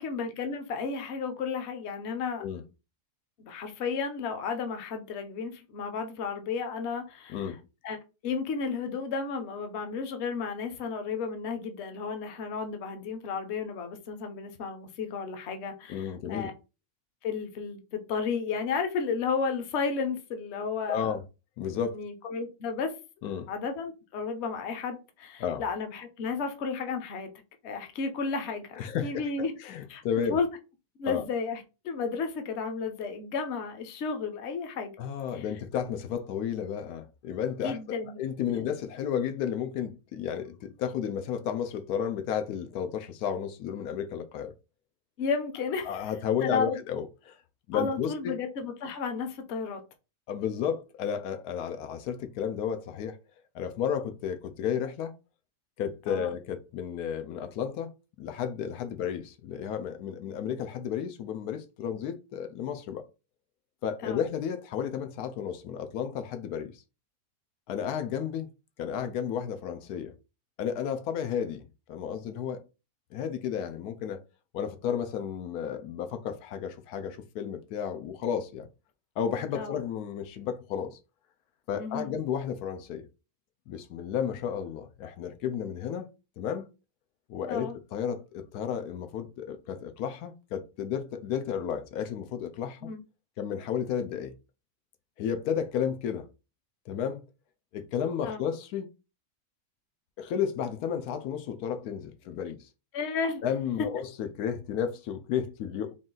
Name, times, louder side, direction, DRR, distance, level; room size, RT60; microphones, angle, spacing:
voice 1, 0.0-2.4 3.4-7.5 7.8-8.0 8.2-16.5 17.2-21.1 21.9-22.9 23.5-27.3 27.6-29.5 29.9-30.0 30.3-30.5 31.0-35.0 35.3-35.4 37.6-38.2 38.6-38.7 45.2-46.1 46.4-46.8 47.7-49.8 56.1-56.3 64.0-64.2 79.5-79.8 81.8-82.1 87.5-87.8 92.8-93.0 98.2-98.4 102.9-103.4, left 5 dB, 55° left, 0.9 m, -33 dB
voice 2, 15.9-16.5 20.9-21.2 21.6-22.0 23.2-23.5 25.4-25.6 28.7-29.1 29.6-30.4 31.0-31.2 35.0-37.8 38.2-44.5 45.8-47.4 47.7-48.3 50.3-53.2 53.5-55.1 55.8-57.9 58.2-63.0 63.8-66.7 67.7-68.5 68.8-70.1 70.6-71.6 71.9-72.6 73.1-74.2 74.5-78.7 79.2-81.0 81.7-83.0 83.7-86.1 86.4-86.7 87.3-92.9 93.4-94.3 95.2-96.3 96.9-97.2 97.7-98.9 100.2-102.6 103.4-105.9, left 8 dB, 85° left, 1.1 m, -32 dB
3.9 x 2.4 x 3.8 m
omnidirectional pair, 1.6 m